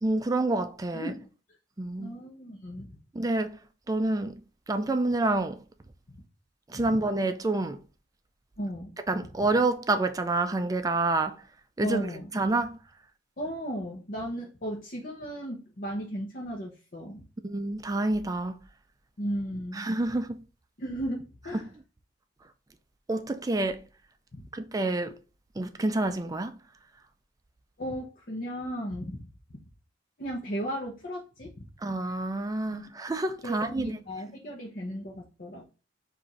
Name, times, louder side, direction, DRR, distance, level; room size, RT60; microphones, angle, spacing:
voice 1, 0.0-1.1 1.8-2.1 3.1-3.6 3.9-4.4 4.7-5.6 6.7-7.8 9.1-11.4 11.8-12.0 12.3-12.8 17.4-18.6 19.7-20.4 21.5-21.7 23.1-23.8 24.5-25.2 25.6-26.6 31.8-34.0, right 2 dB, 20° right, 0.4 m, -28 dB
voice 2, 0.9-1.3 2.0-2.9 6.1-6.2 6.7-6.9 8.6-9.0 11.8-12.3 13.4-17.2 19.2-19.8 20.8-21.7 24.3-24.4 27.8-29.6 30.2-31.5 32.7-32.9 33.4-35.7, equal, 50° left, 0.9 m, -35 dB
4.9 x 2.6 x 4.1 m
head